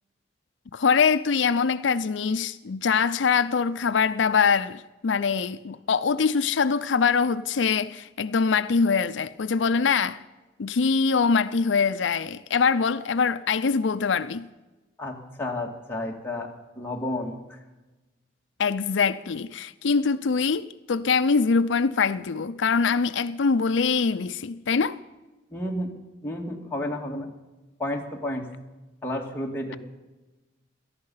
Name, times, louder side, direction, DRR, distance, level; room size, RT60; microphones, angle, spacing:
voice 1, 0.7-10.2 10.6-14.5 18.6-25.0, left 5 dB, 80° left, 0.5 m, -23 dB
voice 2, 15.0-17.6 25.5-25.9 26.2-27.3 27.8-28.5 29.0-29.8, left 1 dB, 10° left, 2.2 m, -31 dB
18.0 x 14.0 x 5.6 m
head